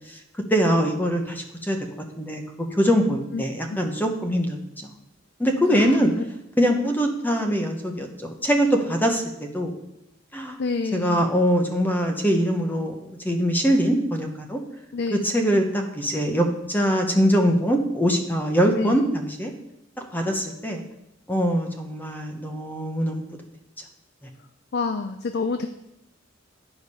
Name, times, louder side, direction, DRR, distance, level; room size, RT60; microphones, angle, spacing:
voice 1, 0.5-1.8 2.2-4.9 5.4-6.1 6.6-9.7 10.3-10.6 10.9-14.6 15.1-19.5 20.1-20.8 21.3-23.2, equal, 10° left, 4 dB, 0.8 m, -23 dB
voice 2, 5.7-6.0 10.6-11.3 14.9-15.2 18.8-19.0 24.7-25.7, left 4 dB, 55° left, 7 dB, 0.4 m, -27 dB
10.0 x 5.0 x 5.4 m, 0.86 s
head